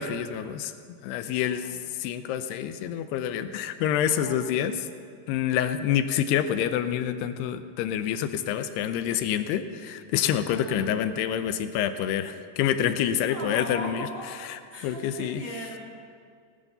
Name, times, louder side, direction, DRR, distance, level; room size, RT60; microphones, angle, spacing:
voice 1, 0.0-1.7 2.0-4.9 5.3-14.1 14.5-15.4, left 9 dB, 85° left, 10 dB, 2.7 m, -27 dB
voice 2, 1.4-1.9 4.1-4.4 10.4-11.0 13.3-14.2 14.7-15.8, right 1 dB, 60° right, -2 dB, 0.8 m, -38 dB
17.5 x 10.5 x 6.8 m, 2.2 s
omnidirectional pair, 4.8 m